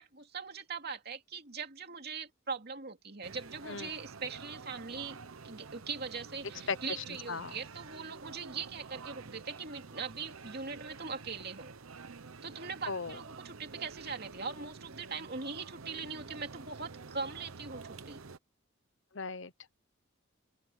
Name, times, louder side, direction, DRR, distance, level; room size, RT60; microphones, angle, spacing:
voice 1, 0.0-5.2 5.4-11.7 12.4-18.2, right 5 dB, 50° right, 2.7 m, -41 dB
sound 1, 3.2-18.4, right 4 dB, 85° right, 1.0 m, -49 dB
voice 2, 6.7-7.6 12.9-13.2 19.1-19.7, left 4 dB, 65° left, 1.0 m, -38 dB
open air
head